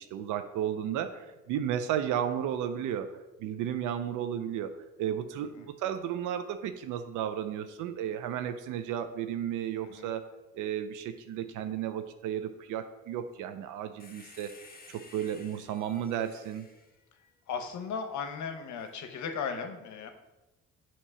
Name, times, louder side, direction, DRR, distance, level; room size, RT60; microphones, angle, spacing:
voice 1, 0.0-3.1 3.4-4.7 5.0-10.2 10.5-14.5 14.9-16.7, right 9 dB, 85° right, 9 dB, 0.5 m, -33 dB
voice 2, 9.8-10.2 17.5-20.1, left 6 dB, 70° left, 6 dB, 0.8 m, -36 dB
sound 1, 14.0-17.8 18.8-18.9, left 3 dB, 30° left, 1.0 m, -54 dB
7.3 x 2.9 x 5.4 m, 1.1 s
cardioid pair, 90°, 30 cm